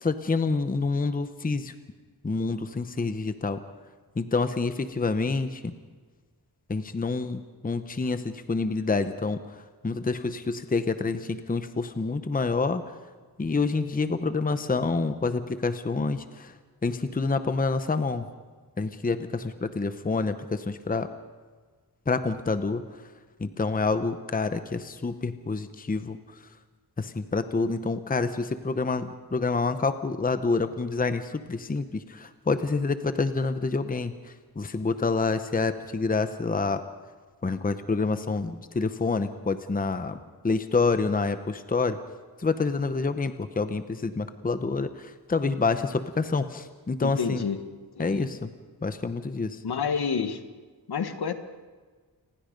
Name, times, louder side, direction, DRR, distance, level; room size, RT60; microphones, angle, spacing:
voice 1, 0.0-1.7 2.2-3.6 4.2-5.7 6.7-9.4 9.8-12.8 13.4-16.5 16.8-18.3 18.8-21.1 22.1-22.8 23.4-26.2 27.0-34.1 34.6-36.8 37.4-40.2 40.4-42.0 42.4-47.4 48.0-48.5 48.8-49.6, left 4 dB, 20° left, 10 dB, 0.8 m, -27 dB
voice 2, 47.0-47.6 48.0-48.3 49.6-50.4 50.9-51.3, left 6 dB, 75° left, 9 dB, 1.6 m, -29 dB
28.5 x 20.5 x 5.3 m, 1.5 s
wide cardioid pair, 175°, 39 cm